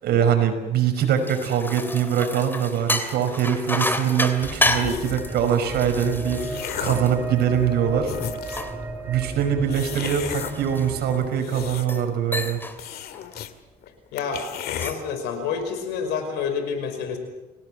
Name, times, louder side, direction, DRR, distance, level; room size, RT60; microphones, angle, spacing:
voice 1, 0.0-8.1 9.1-12.6, right 8 dB, 70° right, 6 dB, 5.4 m, -23 dB
sound 1, 1.0-7.8 8.2-11.2 11.7-12.1 12.3-12.8 13.1-13.4 14.5-15.1, left 1 dB, 10° left, 2.8 m, -30 dB
sound 2, 4.4-11.3, right 2 dB, 15° right, 5.0 m, -35 dB
sound 3, 4.6-5.3 6.0-7.1 7.7-7.8 8.0-8.8 9.7-10.5 11.2-12.1 12.4-12.5 12.8-13.5 13.8-13.9 14.2-14.9, left 10 dB, 70° left, 2.0 m, -34 dB
voice 2, 14.1-14.5 14.8-17.2, left 6 dB, 90° left, 8 dB, 5.3 m, -28 dB
29.0 x 18.0 x 7.7 m, 1.1 s
cardioid pair, 110°, 17 cm